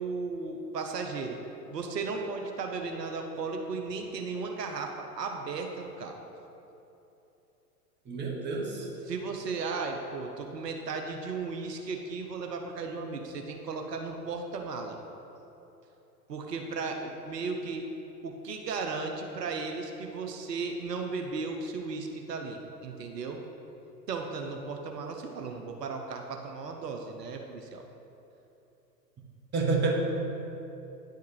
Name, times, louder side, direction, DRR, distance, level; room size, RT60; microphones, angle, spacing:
voice 1, 0.0-1.4 1.7-6.2 9.0-15.0 16.3-17.8 18.2-23.4 24.1-27.8, right 4 dB, 75° right, 3 dB, 0.8 m, -35 dB
voice 2, 8.1-8.9 29.5-29.9, right 4 dB, 20° right, -1 dB, 1.2 m, -28 dB
9.6 x 4.7 x 4.6 m, 3.0 s
figure-of-eight pair, 95°, 49 cm